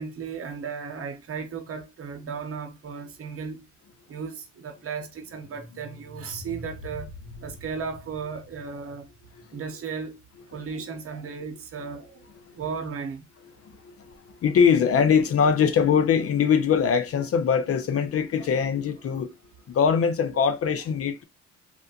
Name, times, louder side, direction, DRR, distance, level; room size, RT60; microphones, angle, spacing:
voice 1, 0.0-3.7 4.1-7.1 7.4-9.1 9.5-10.2 10.5-12.3 12.5-13.2 18.4-18.9, right 5 dB, 50° right, 0.8 m, -35 dB
sound 1, 5.1-10.2, left 2 dB, 85° left, 1.1 m, -45 dB
voice 2, 13.7-14.1 14.4-19.3 19.7-21.2, left 7 dB, 50° left, 0.6 m, -22 dB
3.3 x 2.5 x 2.7 m
cardioid pair, 90°, 30 cm